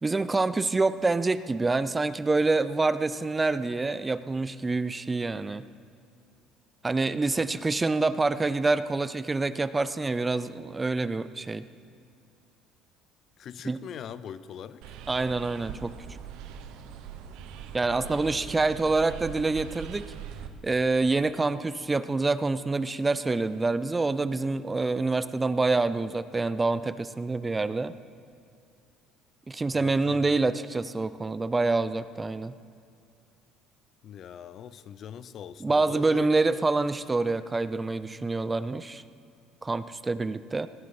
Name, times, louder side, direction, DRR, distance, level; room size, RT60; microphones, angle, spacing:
voice 1, 0.0-5.6 6.8-11.7 13.7-13.8 15.1-15.9 17.7-20.1 20.6-28.0 29.5-32.5 35.6-39.0 39.6-40.7, right 3 dB, 15° right, 14 dB, 0.4 m, -26 dB
voice 2, 13.4-15.0 17.9-18.5 29.7-30.4 34.0-36.4 36.8-36.9, left 9 dB, 50° left, 15 dB, 0.6 m, -42 dB
sound 1, 14.8-20.5, right 7 dB, 75° right, 1.0 m, -42 dB
18.0 x 10.5 x 5.6 m, 2.4 s
cardioid pair, 110°, 0 cm